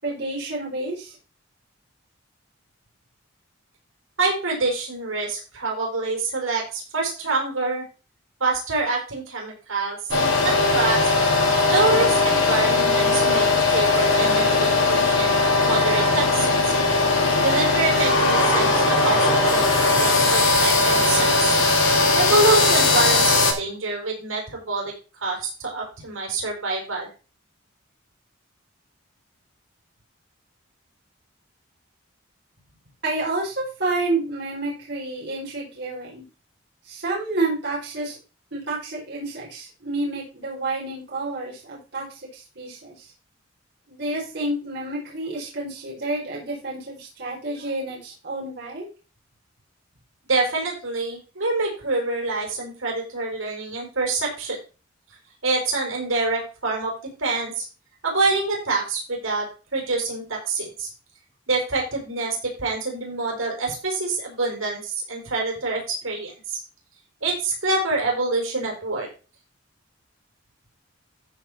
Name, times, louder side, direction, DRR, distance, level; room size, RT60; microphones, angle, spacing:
voice 1, 0.0-1.2 33.0-36.2 36.8-38.2 38.5-43.1 43.9-48.9, right 2 dB, 55° right, -6 dB, 4.9 m, -29 dB
voice 2, 4.2-7.8 8.4-11.1 11.7-15.4 15.7-16.7 17.4-19.7 20.0-21.6 22.1-24.9 25.2-27.1 50.3-54.6 55.4-56.9 57.2-57.7 58.0-59.5 59.7-60.9 61.5-66.6 67.2-69.1, right 3 dB, 80° right, -1 dB, 5.5 m, -26 dB
sound 1, 10.1-23.5, left 3 dB, 75° left, 4.3 m, -19 dB
14.5 x 5.2 x 4.4 m, 0.33 s
head